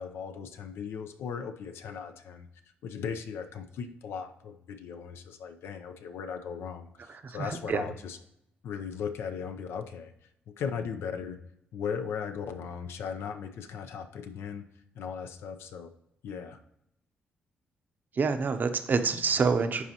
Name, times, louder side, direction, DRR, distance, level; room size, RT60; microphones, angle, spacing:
voice 1, 0.0-2.5 2.8-8.2 8.6-10.1 10.5-11.4 11.7-14.7 14.9-15.9 16.2-16.6, left 6 dB, 80° left, 8 dB, 0.6 m, -37 dB
voice 2, 7.2-7.8 18.2-19.8, right 5 dB, 50° right, 8 dB, 0.7 m, -27 dB
11.0 x 4.0 x 2.9 m, 0.79 s
cardioid pair, 70°, 4 cm